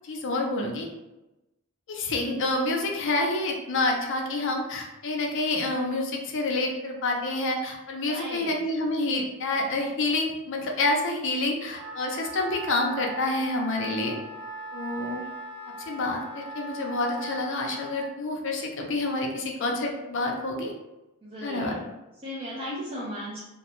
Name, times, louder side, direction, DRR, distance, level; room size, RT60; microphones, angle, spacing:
voice 1, 0.0-0.9 1.9-14.1 14.7-15.2 15.9-20.7 21.4-21.7, left 2 dB, 55° left, 1 dB, 0.5 m, -28 dB
voice 2, 8.1-8.6 15.0-15.3 21.2-21.8 22.2-23.4, equal, 25° right, -7 dB, 0.5 m, -36 dB
Wind instrument woodwind instrument, 11.7-18.1, right 3 dB, 75° right, 0.7 m, -39 dB
2.4 x 2.2 x 2.9 m, 0.99 s
head